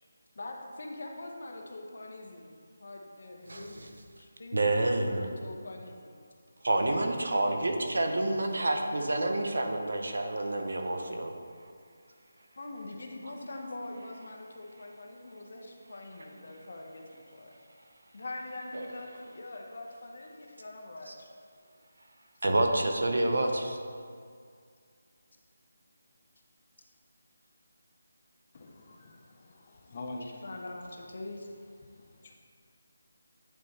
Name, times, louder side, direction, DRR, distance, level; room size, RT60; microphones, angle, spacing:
voice 1, 0.3-6.1 12.5-17.6 18.1-21.3 30.2-31.5, left 2 dB, 55° left, 0.8 m, -43 dB
voice 2, 4.5-5.2 6.6-11.3 18.7-18.8 22.4-23.8, right 2 dB, 70° right, 0.8 m, -28 dB
voice 3, 28.5-30.5 31.8-32.4, left 2 dB, 30° left, 0.4 m, -45 dB
9.0 x 4.1 x 3.3 m
figure-of-eight pair, 175°, 0 cm